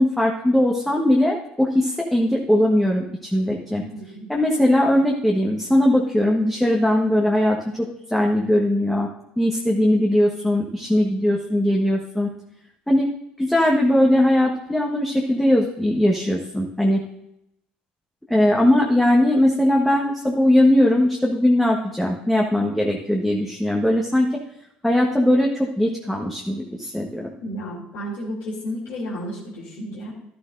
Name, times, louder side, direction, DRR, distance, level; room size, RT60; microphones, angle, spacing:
voice 1, 0.0-3.8 4.3-9.1 9.4-12.3 12.9-13.1 13.4-17.0 18.3-24.3 24.8-27.3, left 1 dB, 5° left, -2 dB, 1.3 m, -20 dB
voice 2, 3.7-4.3 27.4-30.1, equal, 75° left, -7 dB, 2.8 m, -32 dB
11.5 x 11.5 x 2.6 m, 0.80 s
supercardioid pair, 80°, 4 cm